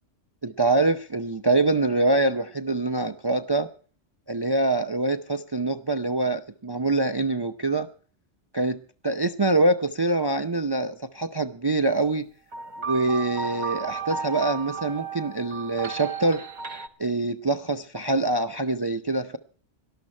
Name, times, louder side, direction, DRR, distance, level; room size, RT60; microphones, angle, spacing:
voice 1, 0.4-3.7 4.3-7.9 8.5-12.3 12.8-16.4 17.0-19.4, right 2 dB, 30° right, 8 dB, 0.5 m, -25 dB
sound 1, 12.5-16.9, right 5 dB, 45° right, 1.2 m, -33 dB
18.5 x 12.5 x 4.4 m, 0.41 s
omnidirectional pair, 1.2 m